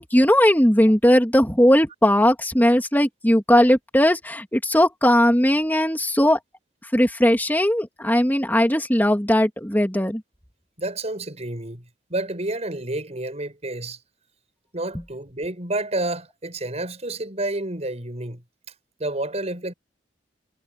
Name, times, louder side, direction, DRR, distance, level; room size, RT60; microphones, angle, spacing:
voice 1, 0.0-6.4 6.9-10.2, equal, 10° left, 3.0 m, -18 dB
voice 2, 10.8-11.8 12.1-14.0 14.7-18.4 19.0-19.7, right 2 dB, 40° right, 6.4 m, -29 dB
head